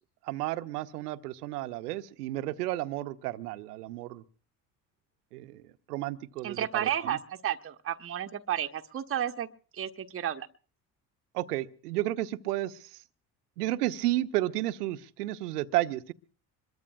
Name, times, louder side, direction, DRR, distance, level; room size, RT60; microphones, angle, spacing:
voice 1, 0.2-4.2 5.3-5.6 5.9-7.2 11.3-13.0 13.6-16.1, right 16 dB, 70° right, 0.8 m, -32 dB
voice 2, 6.4-9.5 9.7-10.5, right 10 dB, 25° right, 0.9 m, -32 dB
25.5 x 22.0 x 2.4 m
figure-of-eight pair, 55°, 48 cm